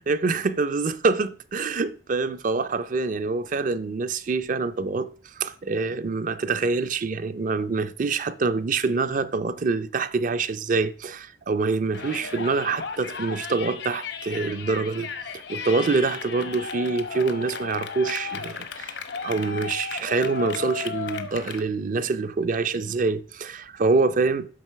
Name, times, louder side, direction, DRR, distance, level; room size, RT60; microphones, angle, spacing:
voice 1, 0.1-5.1 5.4-15.1 15.5-18.9 19.2-24.5, right 4 dB, 45° right, 0.5 m, -25 dB
Yell, 11.9-21.6, left 6 dB, 75° left, 0.8 m, -35 dB
7.7 x 3.9 x 5.6 m
head